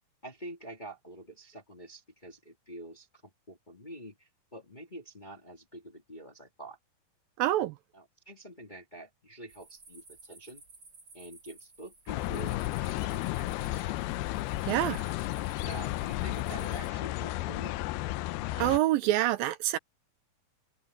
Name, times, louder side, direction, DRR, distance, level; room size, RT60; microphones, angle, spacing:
voice 1, 0.2-6.8 7.9-10.6 11.1-14.0 15.6-17.8, right 1 dB, 20° left, 1.4 m, -47 dB
voice 2, 7.4-7.7 14.7-15.0 18.6-19.8, right 14 dB, 80° right, 2.2 m, -26 dB
sound 1, 9.5-16.9, right 3 dB, 25° right, 5.9 m, -55 dB
sound 2, 12.1-18.8, left 17 dB, 85° left, 2.6 m, -33 dB
open air
omnidirectional pair, 4.4 m